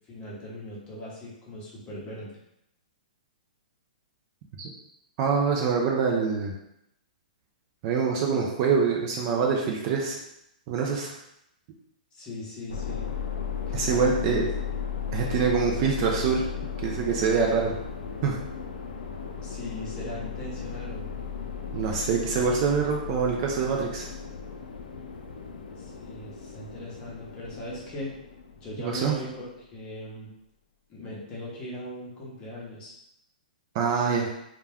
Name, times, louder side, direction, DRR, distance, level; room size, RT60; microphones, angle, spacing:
voice 1, 0.1-2.4 12.1-13.1 13.7-14.5 19.4-21.2 25.8-28.1 28.6-30.3 30.9-32.9, left 1 dB, 20° left, -6 dB, 0.8 m, -39 dB
voice 2, 5.2-6.5 7.8-10.2 10.7-11.1 13.7-14.4 15.1-16.4 16.8-17.7 18.2-18.4 21.7-24.1 28.8-29.2 33.7-34.3, right 5 dB, 35° right, 0 dB, 0.3 m, -25 dB
sound 1, 12.7-29.2, left 7 dB, 85° left, 0.4 m, -36 dB
2.2 x 2.1 x 3.4 m, 0.82 s
hypercardioid pair, 150°, 5 cm